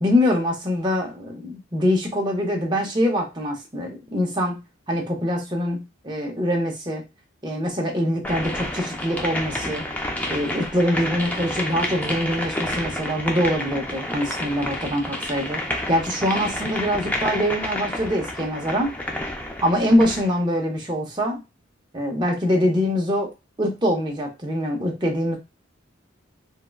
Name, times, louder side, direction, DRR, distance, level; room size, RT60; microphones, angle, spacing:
voice 1, 0.0-7.0 7.4-9.8 10.3-15.6 15.9-18.9 19.6-21.4 21.9-23.3 23.6-25.4, equal, 20° right, 1 dB, 0.6 m, -24 dB
sound 1, 8.2-20.3, left 1 dB, 10° left, 0.3 m, -30 dB
3.6 x 2.1 x 2.2 m, 0.25 s
head